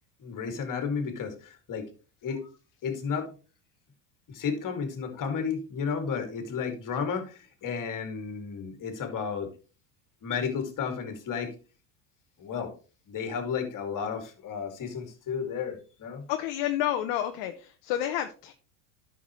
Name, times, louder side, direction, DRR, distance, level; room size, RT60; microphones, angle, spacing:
voice 1, 0.2-1.9 2.2-2.5 2.8-3.3 4.3-9.5 10.2-11.5 12.4-12.7 13.1-16.3, left 6 dB, 40° left, 6 dB, 2.4 m, -32 dB
voice 2, 16.3-18.5, left 12 dB, 60° left, 7 dB, 1.0 m, -30 dB
11.0 x 6.2 x 3.1 m, 0.35 s
hypercardioid pair, 90°, 50 cm